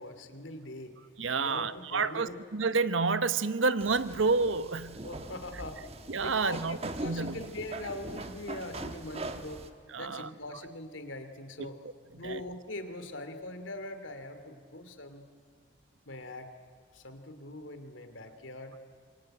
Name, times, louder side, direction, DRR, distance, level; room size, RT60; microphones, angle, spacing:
voice 1, 0.0-1.0 1.4-2.4 5.0-5.8 6.2-9.7 10.0-11.8 12.1-15.3 16.1-16.5 16.9-18.8, left 1 dB, 85° left, 8 dB, 2.8 m, -42 dB
voice 2, 1.2-5.0 6.1-6.8 7.0-7.4 9.9-10.3 11.6-11.9 12.2-12.4, right 4 dB, 85° right, 13 dB, 1.0 m, -29 dB
sound 1, 3.8-9.7, right 2 dB, 30° right, 1.4 m, -41 dB
26.5 x 24.5 x 9.0 m, 2.1 s
head